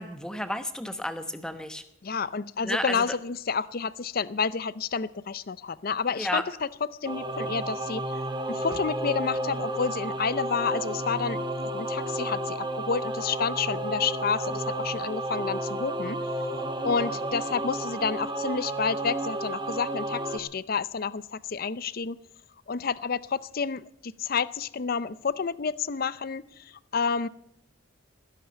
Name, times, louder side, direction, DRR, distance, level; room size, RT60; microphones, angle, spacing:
voice 1, 0.0-1.8 2.6-3.0 6.2-6.4, equal, 5° left, 9 dB, 1.0 m, -32 dB
voice 2, 2.0-6.7 7.0-8.2 8.5-11.4 11.7-16.2 16.8-22.2 22.7-27.3, left 5 dB, 50° left, 18 dB, 0.5 m, -30 dB
Singing / Musical instrument, 7.0-20.4, right 1 dB, 25° right, 1.3 m, -32 dB
15.5 x 11.0 x 8.1 m, 0.77 s
head